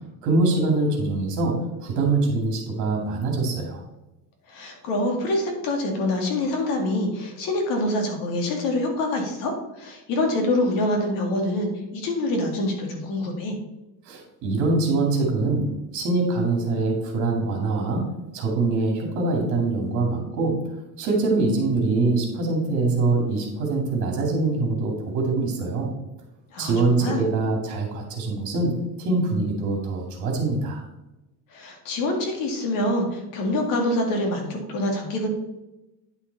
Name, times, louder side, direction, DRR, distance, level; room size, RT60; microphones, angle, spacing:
voice 1, 0.2-3.8 14.1-15.6 15.9-18.0 18.3-20.6 21.0-25.9 26.6-30.8, right 3 dB, 50° right, 1 dB, 2.7 m, -24 dB
voice 2, 4.5-13.6 26.5-27.2 31.5-35.3, left 1 dB, 60° left, 2 dB, 2.3 m, -25 dB
10.0 x 5.8 x 4.1 m, 0.96 s
cardioid pair, 160°, 38 cm